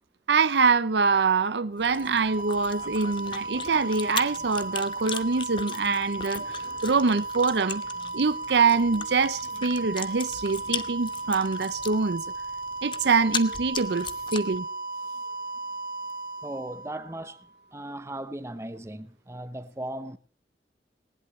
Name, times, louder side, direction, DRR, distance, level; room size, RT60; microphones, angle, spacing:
voice 1, 0.3-7.8 8.1-12.2 12.8-14.7, right 4 dB, 75° right, 0.7 m, -24 dB
Chewing mastication, 1.8-14.6, left 6 dB, 30° left, 1.0 m, -39 dB
sound 1, 1.8-17.6, right 3 dB, 55° right, 3.3 m, -36 dB
voice 2, 16.4-17.4 17.7-20.2, right 1 dB, 15° right, 0.9 m, -37 dB
19.5 x 19.0 x 3.2 m
head